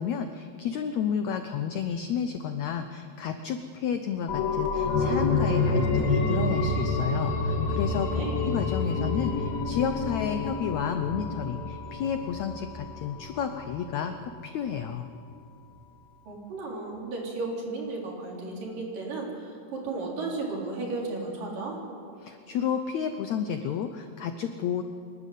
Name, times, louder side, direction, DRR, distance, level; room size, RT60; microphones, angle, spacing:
voice 1, 0.0-15.1 22.2-24.8, left 7 dB, 80° left, 8 dB, 1.6 m, -31 dB
sound 1, 4.3-13.6 14.0-14.1, left 3 dB, 55° left, 2.5 m, -28 dB
voice 2, 16.3-21.8, right 3 dB, 65° right, -2 dB, 5.2 m, -34 dB
27.0 x 12.0 x 9.3 m, 2.4 s
omnidirectional pair, 4.2 m